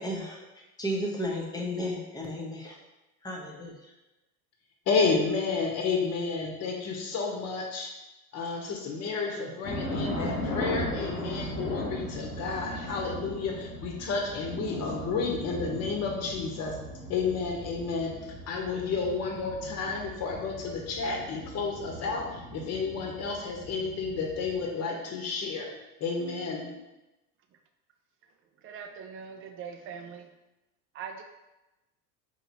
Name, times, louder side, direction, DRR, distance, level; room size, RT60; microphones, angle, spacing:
voice 1, 0.0-2.8 3.2-3.9, equal, 10° left, -2 dB, 0.8 m, -34 dB
voice 2, 4.9-7.9 8.3-16.8 17.1-25.7 26.0-26.7, left 4 dB, 35° left, 1 dB, 1.0 m, -31 dB
sound 1, 9.6-24.7, left 1 dB, 90° left, 1.2 m, -38 dB
voice 3, 28.6-30.3 30.9-31.2, right 6 dB, 30° right, 4 dB, 0.5 m, -41 dB
4.5 x 2.8 x 2.7 m, 1.0 s
hypercardioid pair, 90°, 45 cm